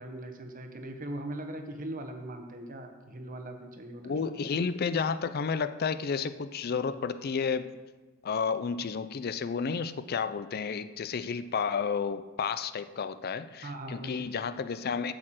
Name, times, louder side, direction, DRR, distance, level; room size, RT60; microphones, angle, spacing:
voice 1, 0.0-4.1 13.6-14.2, right 1 dB, 40° right, 5 dB, 1.1 m, -40 dB
voice 2, 4.0-7.7 8.2-15.1, left 5 dB, 50° left, 13 dB, 0.4 m, -31 dB
8.2 x 6.4 x 7.7 m, 1.2 s
head